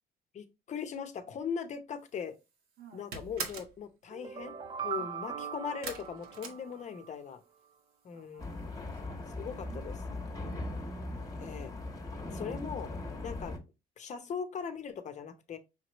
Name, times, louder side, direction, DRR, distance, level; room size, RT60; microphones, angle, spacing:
voice 1, 0.3-2.4 2.9-4.5 4.8-7.4 8.0-8.5 9.4-9.9 11.4-11.7 12.3-12.9 13.2-13.6 14.0-15.6, left 6 dB, 45° left, 0.8 m, -39 dB
sound 1, 2.1-2.5 2.8-3.8 5.8-7.3 7.6-8.2 8.5-8.6 9.0-9.1, right 5 dB, 70° right, 1.3 m, -42 dB
voice 2, 2.8-3.1 4.9-5.2 6.3-6.7 8.1-10.8 11.5-11.6, right 6 dB, 85° right, 1.6 m, -57 dB
sound 2, 4.1-7.2, right 7 dB, 30° right, 0.5 m, -40 dB
sound 3, 8.4-13.6, left 2 dB, 20° left, 1.2 m, -39 dB
5.6 x 3.1 x 3.0 m
cardioid pair, 110°, 17 cm